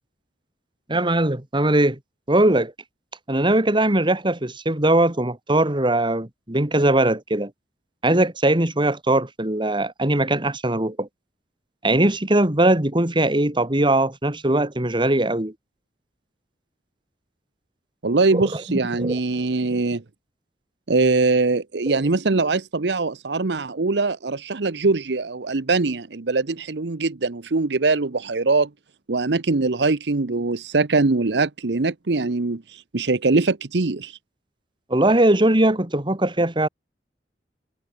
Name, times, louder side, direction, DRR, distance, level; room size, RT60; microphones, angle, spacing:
voice 1, 0.9-2.0 2.3-2.7 3.3-7.5 8.0-11.1 11.8-15.5 18.3-18.6 19.0-19.2 19.6-19.8 34.9-36.7, right 1 dB, 30° right, 2.3 m, -20 dB
voice 2, 18.0-20.0 20.9-28.7 29.1-34.2, right 3 dB, 70° right, 0.9 m, -22 dB
head